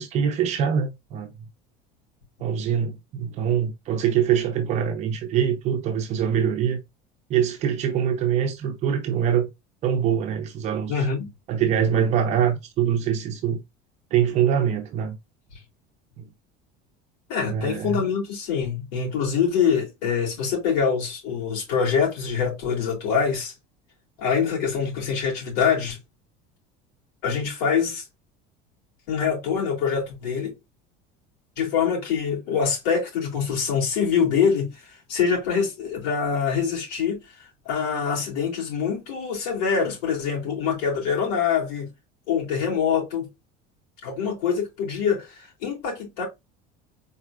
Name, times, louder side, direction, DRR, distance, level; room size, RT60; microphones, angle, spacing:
voice 1, 0.0-1.5 2.4-6.8 7.3-9.5 9.8-10.9 11.5-13.6 14.1-15.2 16.2-16.3 17.5-18.0, right 8 dB, 35° right, 0.6 m, -24 dB
voice 2, 10.9-11.3 17.3-23.5 24.2-26.0 27.2-28.0 29.1-30.5 31.6-37.2 37.6-41.9 42.3-43.3 44.0-46.3, left 6 dB, 75° left, 3.1 m, -24 dB
4.4 x 4.0 x 2.4 m
cardioid pair, 175°, 20 cm